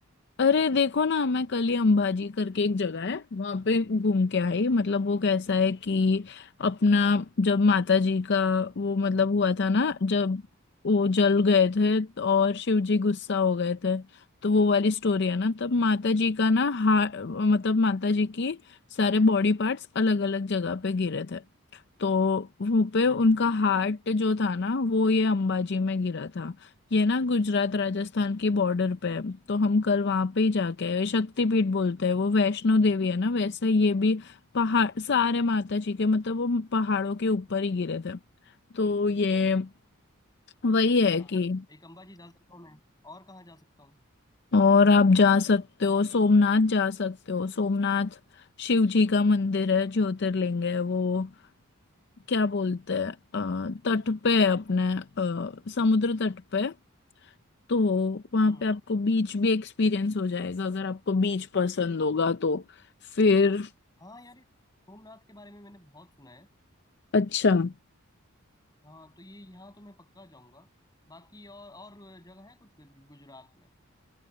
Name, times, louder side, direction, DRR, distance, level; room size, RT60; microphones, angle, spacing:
voice 1, 0.4-10.4 10.8-21.4 21.7-38.2 38.7-39.7 40.6-41.6 44.5-51.3 52.3-56.7 57.7-62.8 63.1-63.7 67.1-67.7, left 4 dB, 55° left, 0.5 m, -24 dB
voice 2, 23.1-23.6 40.7-40.8 41.1-41.3 41.7-44.0 58.4-58.7 64.0-64.5 64.9-66.5 68.8-70.7 71.1-73.7, left 1 dB, 20° left, 7.9 m, -51 dB
head